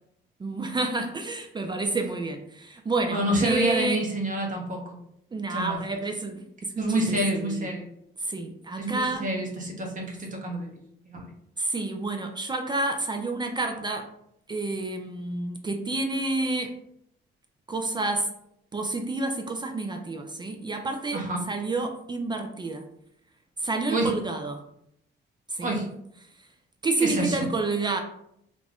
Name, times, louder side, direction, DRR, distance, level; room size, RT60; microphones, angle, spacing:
voice 1, 0.4-4.0 5.3-7.7 8.2-9.3 11.6-14.1 14.5-16.7 17.7-18.3 18.7-21.2 21.5-22.8 23.6-24.6 25.5-25.8 26.8-28.0, right 2 dB, 25° right, 4 dB, 0.3 m, -29 dB
voice 2, 3.1-5.0 5.5-5.8 6.8-7.9 8.8-10.7 11.1-11.3 21.1-21.5 23.9-24.1 25.6-25.9 27.0-27.4, right 1 dB, 40° right, 0 dB, 0.8 m, -27 dB
2.5 x 2.1 x 3.4 m, 0.74 s
cardioid pair, 90°, 20 cm